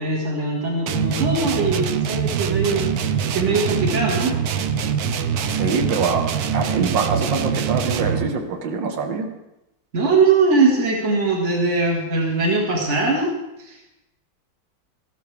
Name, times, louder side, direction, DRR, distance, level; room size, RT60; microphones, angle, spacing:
voice 1, 0.0-4.3 9.9-13.3 13.6-13.9, right 3 dB, 40° right, -1 dB, 2.2 m, -21 dB
sound 1, 0.9-8.4, right 7 dB, 65° right, 1.1 m, -24 dB
voice 2, 5.5-9.3, right 4 dB, 80° right, 4 dB, 2.0 m, -24 dB
15.0 x 13.0 x 3.4 m, 0.93 s
omnidirectional pair, 2.0 m